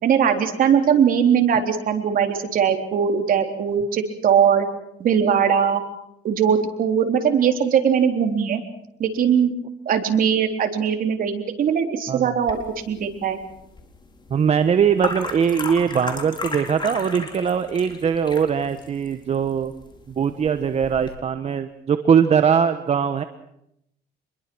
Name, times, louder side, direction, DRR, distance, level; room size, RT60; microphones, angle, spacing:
voice 1, 0.0-4.7 5.0-5.8 6.2-8.6 9.0-9.5 9.9-12.6 12.9-13.4, right 7 dB, 55° right, 5 dB, 3.6 m, -20 dB
sound 1, 12.4-21.1, left 3 dB, 25° left, 4.2 m, -35 dB
voice 2, 14.3-19.7 20.2-23.2, right 7 dB, 40° right, 9 dB, 1.2 m, -21 dB
26.5 x 21.5 x 6.2 m, 0.78 s
cardioid pair, 110°, 17 cm